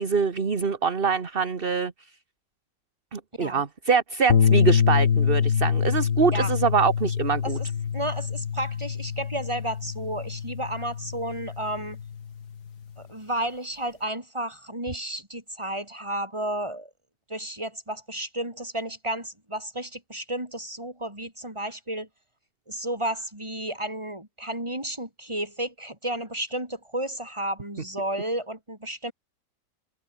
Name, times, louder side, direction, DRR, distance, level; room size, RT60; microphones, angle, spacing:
voice 1, 0.0-1.9 3.1-7.6, right 5 dB, 35° right, 1.6 m, -24 dB
sound 1, 4.3-12.7, left 7 dB, 65° left, 2.1 m, -25 dB
voice 2, 7.9-12.0 13.1-16.9 17.3-22.1 22.7-29.1, right 1 dB, 15° right, 5.1 m, -32 dB
open air
omnidirectional pair, 1.9 m